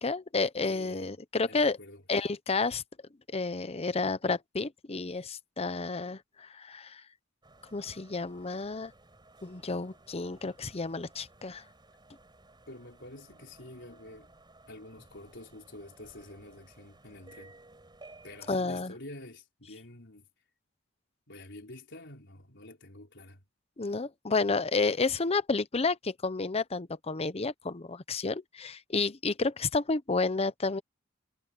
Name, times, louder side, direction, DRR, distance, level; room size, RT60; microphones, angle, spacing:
voice 1, 0.0-1.8 2.1-2.8 3.3-7.0 7.7-8.9 9.4-11.6 18.5-18.9 23.8-30.8, left 3 dB, 30° left, 0.8 m, -31 dB
voice 2, 0.6-1.1 1.5-2.0 12.7-14.3 14.7-17.6 18.2-20.3 21.3-23.4, left 1 dB, 60° left, 4.8 m, -48 dB
sound 1, 7.4-18.6, right 2 dB, 20° right, 5.0 m, -57 dB
head